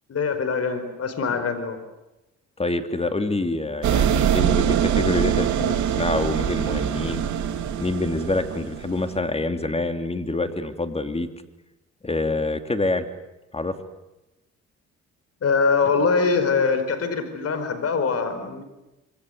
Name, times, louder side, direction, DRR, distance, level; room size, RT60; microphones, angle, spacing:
voice 1, 0.1-1.8 15.4-18.6, left 5 dB, 55° left, 9 dB, 5.1 m, -23 dB
voice 2, 2.6-7.2 7.8-11.3 12.0-13.1 13.5-13.8, left 2 dB, 20° left, 8 dB, 3.0 m, -26 dB
sound 1, 3.8-9.2, right 9 dB, 75° right, 3.1 m, -23 dB
26.5 x 25.0 x 8.0 m, 0.98 s
cardioid pair, 90°, 30 cm